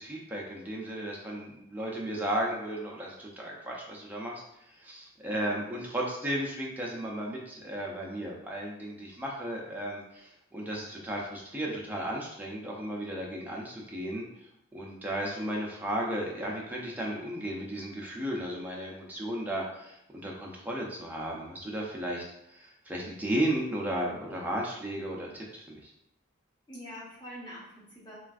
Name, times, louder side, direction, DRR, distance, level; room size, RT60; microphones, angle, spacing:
voice 1, 0.0-14.2 14.7-25.9, right 1 dB, 10° right, -3 dB, 0.4 m, -34 dB
voice 2, 26.7-28.2, equal, 20° left, -7 dB, 0.9 m, -45 dB
3.2 x 2.4 x 2.4 m, 0.81 s
head